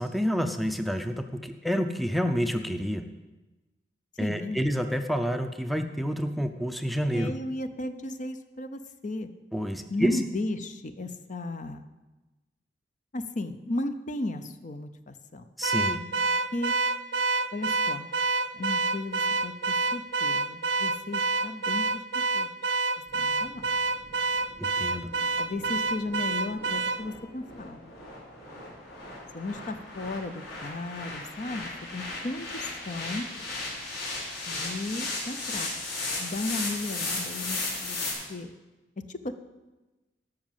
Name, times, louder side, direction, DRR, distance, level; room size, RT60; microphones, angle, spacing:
voice 1, 0.0-3.1 4.2-7.3 9.5-10.2 15.6-16.0 24.6-25.1, equal, ahead, 7 dB, 0.5 m, -28 dB
voice 2, 4.2-4.7 7.1-9.3 9.9-11.8 13.1-15.5 16.5-16.7 17.5-18.1 18.5-22.5 23.1-23.7 25.4-27.9 29.3-33.3 34.5-35.7 36.2-38.5 39.0-39.3, left 2 dB, 45° left, 10 dB, 0.7 m, -35 dB
Car / Alarm, 15.6-27.0, right 3 dB, 85° right, 0.5 m, -28 dB
sound 1, 23.1-38.1, left 2 dB, 70° left, 4.4 m, -36 dB
12.5 x 6.2 x 7.4 m, 1.1 s
head